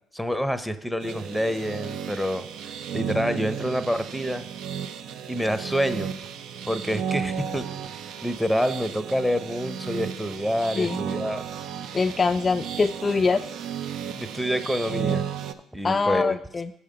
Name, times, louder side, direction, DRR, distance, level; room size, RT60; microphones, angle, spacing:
voice 1, 0.1-2.4 2.9-4.5 5.3-6.1 6.7-7.6 8.2-11.4 14.2-15.2 15.7-16.4, equal, ahead, 11 dB, 0.7 m, -27 dB
sound 1, 1.0-15.5, right 8 dB, 70° right, 0.5 m, -34 dB
voice 2, 11.9-13.5 15.8-16.7, left 4 dB, 30° left, 8 dB, 0.3 m, -23 dB
6.8 x 5.0 x 6.7 m, 0.75 s
supercardioid pair, 70°, 0 cm